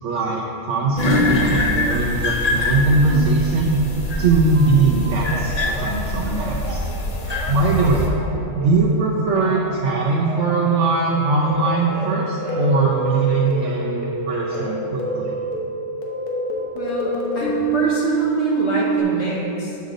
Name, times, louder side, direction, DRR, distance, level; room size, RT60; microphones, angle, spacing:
voice 1, 0.0-3.9 4.2-5.5 5.8-6.8 7.5-8.1 8.6-15.4, right 3 dB, 65° right, -4 dB, 1.0 m, -20 dB
sound 1, 1.0-8.1, left 2 dB, 35° left, 0.7 m, -23 dB
Telephone, 4.5-8.9 9.3-12.8 13.0-15.6 16.1-16.6, right 1 dB, 25° right, 1.0 m, -36 dB
sound 2, 11.5-19.0, right 4 dB, 80° left, 1.4 m, -25 dB
voice 2, 16.7-19.8, left 1 dB, 55° left, -4 dB, 1.7 m, -26 dB
8.1 x 6.5 x 3.8 m, 2.7 s
omnidirectional pair, 1.4 m